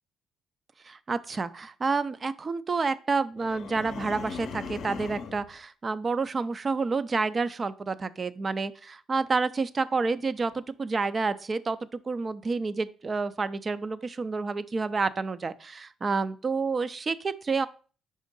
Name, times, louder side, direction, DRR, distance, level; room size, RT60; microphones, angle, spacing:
voice 1, 0.8-17.7, right 4 dB, 35° right, 15 dB, 0.4 m, -29 dB
sound 1, 3.4-5.5, left 5 dB, 65° left, 0.6 m, -39 dB
5.1 x 3.7 x 5.2 m, 0.39 s
supercardioid pair, 75°, 0 cm